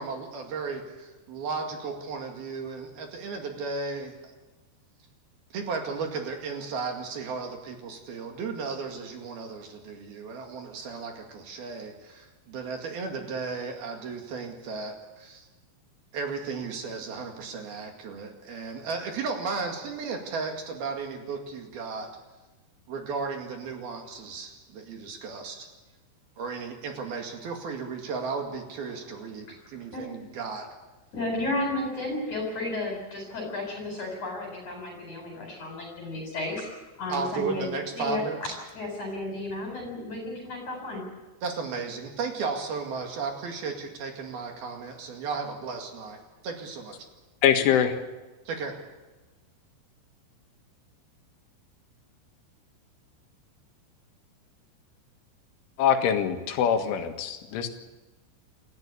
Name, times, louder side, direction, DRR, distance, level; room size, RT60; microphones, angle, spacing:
voice 1, 0.0-4.1 5.5-15.4 16.1-22.1 22.9-25.7 26.4-30.7 37.1-38.6 41.4-47.0 48.5-48.7, right 4 dB, 60° right, 3 dB, 3.7 m, -34 dB
voice 2, 31.1-36.7 37.0-41.0, left 2 dB, 40° left, 1 dB, 5.4 m, -33 dB
voice 3, 47.4-48.0 55.8-57.7, left 8 dB, 80° left, 5 dB, 4.1 m, -23 dB
28.5 x 14.5 x 8.4 m, 1.2 s
omnidirectional pair, 5.5 m